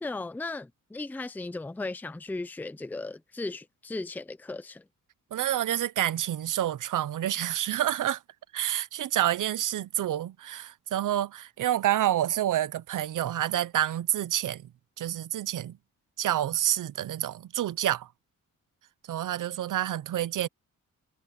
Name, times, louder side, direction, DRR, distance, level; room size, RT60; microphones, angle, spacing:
voice 1, 0.0-4.8, left 2 dB, 5° left, 0.5 m, -36 dB
voice 2, 5.3-8.2 8.5-14.7 15.0-15.8 16.2-18.1 19.1-20.5, right 12 dB, 70° right, 0.7 m, -28 dB
wide cardioid pair, 180°, 32 cm